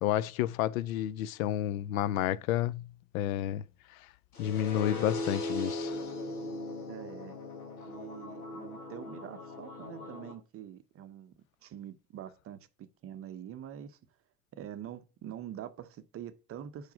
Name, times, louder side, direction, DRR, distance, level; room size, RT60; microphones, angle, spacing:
voice 1, 0.0-2.9 3.1-3.6 4.4-6.0, left 12 dB, 70° left, 0.5 m, -30 dB
sound 1, 4.3-10.3, left 2 dB, 90° left, 1.5 m, -39 dB
voice 2, 6.9-7.4 7.8-11.3 11.6-14.0 14.5-16.9, right 10 dB, 30° right, 0.6 m, -45 dB
4.8 x 4.7 x 5.1 m
hypercardioid pair, 85°, 44 cm